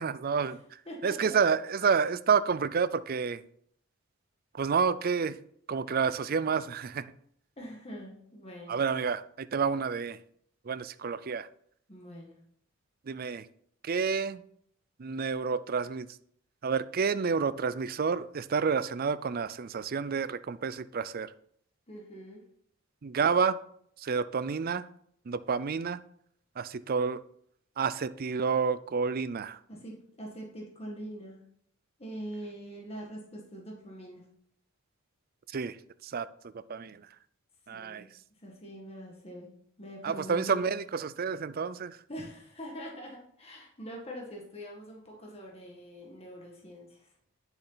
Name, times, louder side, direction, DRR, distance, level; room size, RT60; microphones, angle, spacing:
voice 1, 0.0-3.4 4.5-5.4 5.7-7.1 8.7-10.2 10.6-11.5 13.1-13.5 13.8-14.4 15.0-16.1 16.6-21.3 23.0-23.6 24.0-24.9 25.3-26.0 26.6-27.2 27.8-29.6 35.5-37.1 37.7-38.1 40.0-42.0, right 5 dB, 45° right, 14 dB, 0.4 m, -29 dB
voice 2, 0.9-1.3 7.6-8.8 11.9-12.4 21.9-22.4 29.7-31.4 32.0-34.2 37.7-38.1 38.4-39.5 39.8-40.6 42.1-47.1, equal, 30° left, -1 dB, 1.7 m, -43 dB
9.9 x 6.9 x 4.1 m, 0.67 s
head